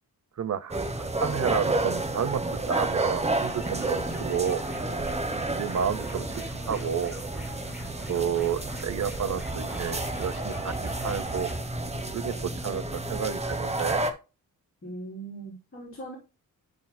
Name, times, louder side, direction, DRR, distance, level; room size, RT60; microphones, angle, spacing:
voice 1, 0.4-0.8 1.2-2.4 2.7-4.6 5.5-7.2 8.1-11.5 12.1-14.0, right 8 dB, 50° right, 0.7 m, -30 dB
sound 1, 0.7-14.1, right 2 dB, 20° right, 1.0 m, -31 dB
sound 2, 3.3-11.5, left 1 dB, 5° right, 5.0 m, -45 dB
voice 2, 14.8-16.2, right 2 dB, 35° left, 3.9 m, -40 dB
12.5 x 5.2 x 2.2 m
wide cardioid pair, 155°, 36 cm